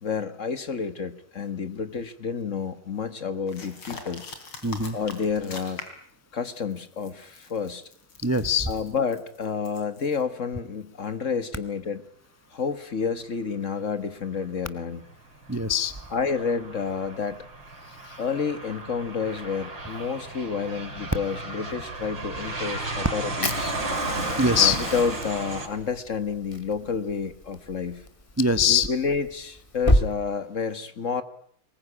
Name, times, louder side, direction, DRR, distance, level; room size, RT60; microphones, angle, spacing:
voice 1, 0.0-4.2 4.9-5.8 6.3-7.8 8.7-12.0 12.5-15.0 16.1-17.4 18.2-23.7 24.6-28.0 28.7-31.2, left 5 dB, 40° left, 12 dB, 1.5 m, -29 dB
sound 1, 3.5-6.1 6.5-10.2, left 4 dB, 80° left, 4.2 m, -43 dB
voice 2, 4.6-5.0 8.2-8.7 15.5-15.9 18.1-18.2 24.4-24.8 28.4-28.9, left 4 dB, 20° right, 12 dB, 0.4 m, -22 dB
Aircraft, 15.5-25.7, right 2 dB, 60° right, 5.9 m, -34 dB
Fire, 23.4-30.1, left 1 dB, 20° left, 1.4 m, -30 dB
23.5 x 20.5 x 9.8 m, 0.63 s
omnidirectional pair, 2.3 m